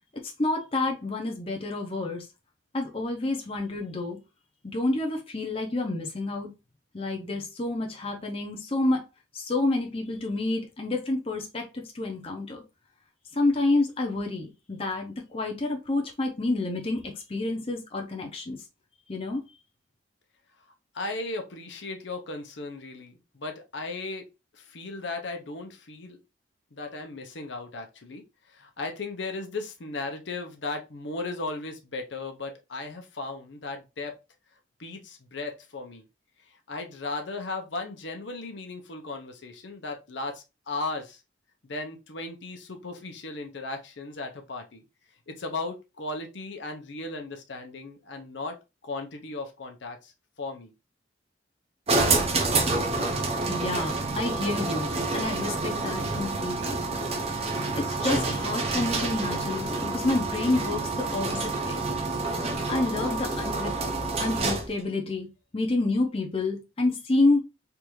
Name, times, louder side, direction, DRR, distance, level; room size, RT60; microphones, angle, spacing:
voice 1, 0.4-2.3 2.7-4.2 4.6-6.5 6.9-9.0 9.3-12.6 13.3-18.6 19.1-19.4 53.5-56.8 57.7-61.8 62.7-63.7 64.2-65.3 65.5-67.4, left 2 dB, 30° left, 0.6 m, -29 dB
voice 2, 20.9-24.3 24.5-26.2 26.7-34.2 34.8-36.0 36.5-41.2 41.6-44.8 45.3-48.6 48.8-50.1 50.4-50.7, left 3 dB, 65° left, 0.7 m, -36 dB
sound 1, 51.9-64.8, right 3 dB, 30° right, 0.6 m, -28 dB
3.4 x 2.6 x 3.0 m
head